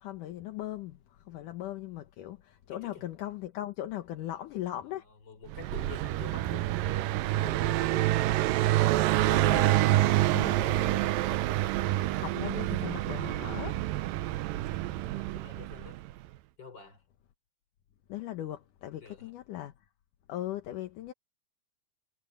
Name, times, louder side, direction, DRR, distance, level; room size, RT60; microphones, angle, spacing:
voice 1, 0.0-5.0 9.3-10.9 11.2-11.4 12.1-13.8 18.1-19.7 20.3-21.1, left 13 dB, 65° left, 2.1 m, -39 dB
voice 2, 2.7-3.0 4.3-4.4 5.3-8.4 9.9-11.3 15.1-16.0 16.6-17.0 19.0-19.3, left 6 dB, 25° left, 5.2 m, -49 dB
Car passing by, 5.5-16.1, right 15 dB, 80° right, 2.0 m, -27 dB
omnidirectional pair, 4.9 m